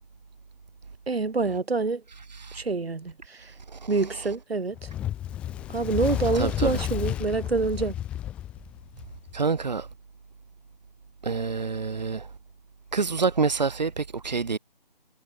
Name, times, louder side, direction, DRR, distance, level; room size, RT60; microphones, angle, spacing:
voice 1, 1.1-2.0 2.5-3.5 3.9-4.9 5.7-8.0, right 4 dB, 80° right, 2.6 m, -27 dB
voice 2, 2.3-2.6 3.7-3.9 6.3-6.8 9.3-9.9 11.2-12.3 12.9-14.6, right 4 dB, 45° right, 2.7 m, -27 dB
Fire, 4.8-9.3, left 11 dB, 5° left, 1.8 m, -32 dB
figure-of-eight pair, 175°, 30 cm